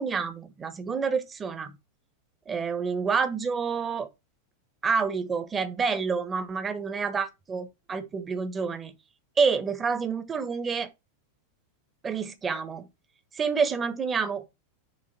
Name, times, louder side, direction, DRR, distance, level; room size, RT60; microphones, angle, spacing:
voice 1, 0.0-1.8 2.5-4.1 4.8-8.9 9.4-10.9 12.0-12.9 13.3-14.5, right 5 dB, 20° right, 1.3 m, -28 dB
6.6 x 3.7 x 5.0 m
figure-of-eight pair, 90°, 0 cm